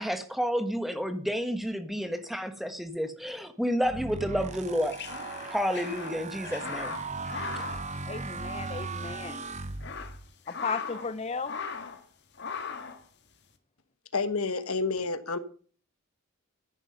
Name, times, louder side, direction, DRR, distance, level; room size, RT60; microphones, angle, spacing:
voice 1, 0.0-5.0 5.5-7.0, equal, ahead, 1.4 m, -30 dB
sound 1, 3.8-10.3, right 3 dB, 30° right, 0.7 m, -38 dB
sound 2, 4.6-8.7 8.9-9.1 9.6-11.2 11.4-12.0 12.4-13.0, left 5 dB, 50° left, 1.7 m, -39 dB
voice 2, 8.1-9.5 10.5-11.5, left 4 dB, 30° left, 0.5 m, -35 dB
voice 3, 14.1-15.4, left 4 dB, 75° left, 1.3 m, -29 dB
14.5 x 10.5 x 5.4 m
head